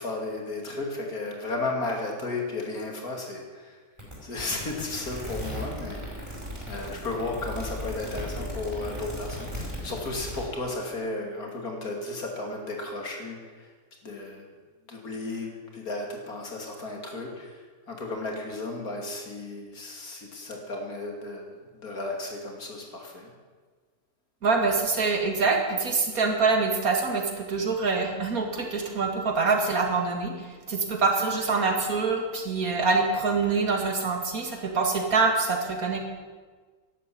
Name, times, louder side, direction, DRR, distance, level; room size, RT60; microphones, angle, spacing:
voice 1, 0.0-3.8 4.2-13.7 14.0-14.5 14.9-23.3, left 2 dB, 70° left, 2 dB, 3.2 m, -34 dB
sound 1, 4.0-10.4, equal, 20° right, 5.3 m, -36 dB
voice 2, 24.4-30.3 30.7-36.1, right 4 dB, 65° right, 3 dB, 2.5 m, -25 dB
12.5 x 11.5 x 8.7 m, 1.4 s
omnidirectional pair, 1.6 m